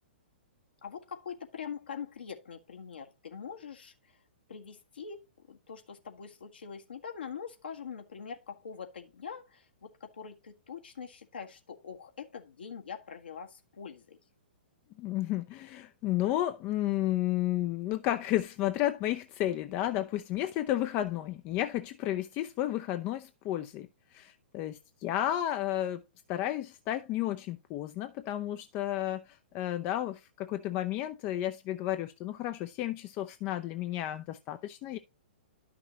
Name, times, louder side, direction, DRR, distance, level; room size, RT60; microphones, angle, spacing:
voice 1, 0.8-4.2 4.5-14.2, left 6 dB, 65° left, 1.6 m, -44 dB
voice 2, 15.0-26.0 26.3-35.0, left 13 dB, 30° left, 0.6 m, -32 dB
11.5 x 6.0 x 2.9 m
figure-of-eight pair, 115°, 6 cm